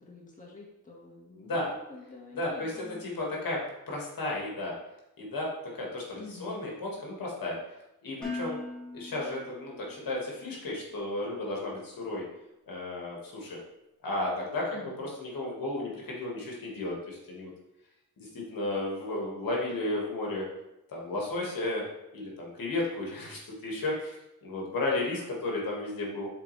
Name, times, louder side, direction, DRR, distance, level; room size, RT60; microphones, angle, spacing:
voice 1, 0.0-3.0 6.1-6.6 14.7-15.0, left 3 dB, 20° left, -4 dB, 1.6 m, -47 dB
voice 2, 1.4-1.7 2.3-3.6 3.9-4.7 5.2-7.6 8.0-8.6 8.9-12.2 12.7-13.6 14.0-17.5 18.2-20.5 20.9-21.8 22.1-24.2 24.4-26.3, left 2 dB, 65° left, -2 dB, 1.9 m, -33 dB
Dishes pots and pans, 8.2-10.3, left 3 dB, ahead, 2.1 m, -40 dB
7.3 x 4.2 x 3.3 m, 0.89 s
cardioid pair, 85°, 37 cm